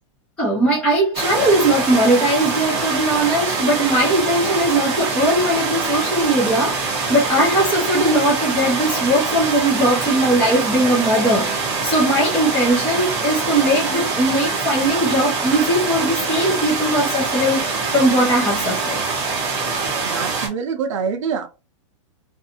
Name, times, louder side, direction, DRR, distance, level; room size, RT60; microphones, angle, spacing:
voice 1, 0.4-11.5 11.8-19.0, right 1 dB, 5° left, 0.8 m, -19 dB
sound 1, 1.1-20.5, right 4 dB, 20° right, 0.8 m, -24 dB
voice 2, 20.0-21.5, right 6 dB, 70° right, 0.5 m, -25 dB
2.6 x 2.4 x 2.6 m
supercardioid pair, 175°, 17 cm